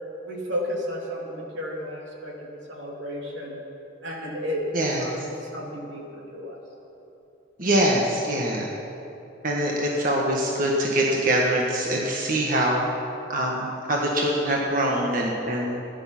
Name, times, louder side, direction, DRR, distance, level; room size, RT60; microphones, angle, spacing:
voice 1, 0.2-3.6 4.0-6.6, equal, 85° right, -2 dB, 3.0 m, -33 dB
voice 2, 4.7-5.0 7.6-8.7 9.4-12.8 13.3-15.8, right 1 dB, 45° right, -2 dB, 1.5 m, -24 dB
17.0 x 11.0 x 6.0 m, 2.8 s
head